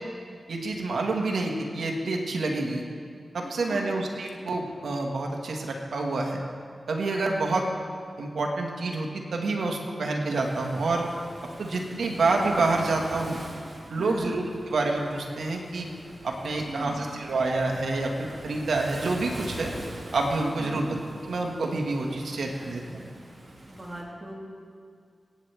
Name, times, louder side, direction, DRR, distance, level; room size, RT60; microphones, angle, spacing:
voice 1, 0.5-2.8 3.3-6.4 6.9-7.7 8.2-11.1 11.6-13.4 13.9-15.9 16.2-19.7 20.1-21.0 21.2-22.8, right 3 dB, 85° right, 1 dB, 1.6 m, -28 dB
Waves surf, 10.4-24.0, right 1 dB, 50° right, 2.4 m, -43 dB
voice 2, 14.0-14.4 16.7-17.1 20.6-20.8 22.1-23.0 23.7-24.5, right 1 dB, 30° right, -3 dB, 2.6 m, -40 dB
23.5 x 9.6 x 3.4 m, 2.1 s
cardioid pair, 55°, 0 cm